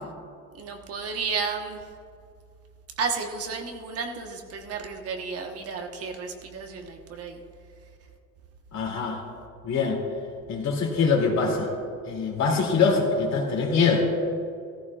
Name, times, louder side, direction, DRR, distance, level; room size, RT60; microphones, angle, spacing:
voice 1, 0.5-1.8 3.0-7.4, right 5 dB, 45° right, 3 dB, 1.2 m, -32 dB
voice 2, 8.7-9.2 9.6-10.0 10.5-11.7 12.0-14.0, left 4 dB, 55° left, -1 dB, 2.7 m, -23 dB
15.0 x 14.5 x 2.4 m, 2.4 s
cardioid pair, 140°, 32 cm